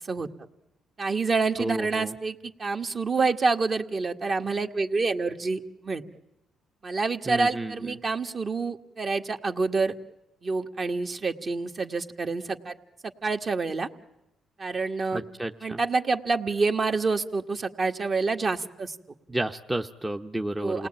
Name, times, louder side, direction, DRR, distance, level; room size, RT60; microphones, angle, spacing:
voice 1, 1.0-6.0 6.8-9.9 10.4-12.8 13.2-13.9 14.6-15.2 15.6-19.0 20.6-20.9, right 4 dB, 40° right, 5 dB, 1.7 m, -27 dB
voice 2, 1.6-2.1 7.3-8.0 15.1-15.8 19.3-20.9, right 1 dB, 10° right, 5 dB, 0.9 m, -31 dB
28.5 x 19.0 x 8.9 m, 0.92 s
cardioid pair, 90°, 0 cm